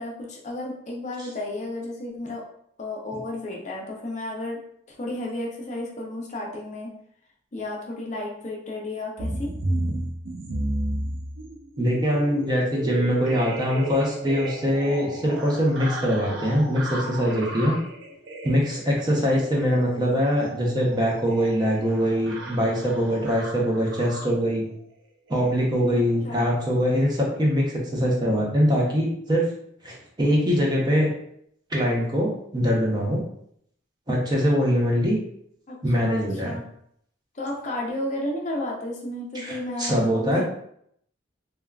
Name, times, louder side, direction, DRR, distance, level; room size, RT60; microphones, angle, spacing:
voice 1, 0.0-2.4 2.8-4.6 4.9-6.9 7.5-9.5 25.9-26.5 35.7-36.7 37.3-40.4, left 1 dB, 40° left, -1 dB, 0.5 m, -33 dB
sound 1, 9.2-24.6 25.3-25.6 25.8-26.1 26.3-26.5 26.8-27.0, right 1 dB, 80° right, 0.6 m, -34 dB
voice 2, 11.8-17.8 18.4-24.7 25.3-29.5 29.8-31.1 31.7-33.2 34.1-35.2 35.8-36.6 39.3-40.4, equal, 20° right, -2 dB, 0.6 m, -23 dB
3.4 x 2.2 x 2.3 m, 0.69 s
head